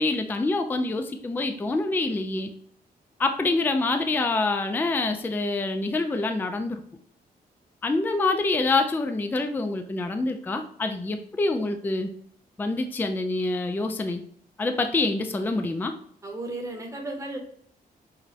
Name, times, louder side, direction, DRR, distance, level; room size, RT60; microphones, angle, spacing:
voice 1, 0.0-2.5 3.2-6.8 7.8-12.1 12.6-14.2 14.6-15.9, left 3 dB, 10° left, 6 dB, 0.3 m, -26 dB
voice 2, 16.2-17.4, right 2 dB, 20° right, 1 dB, 0.8 m, -34 dB
6.0 x 2.1 x 2.7 m, 0.64 s
wide cardioid pair, 165°, 16 cm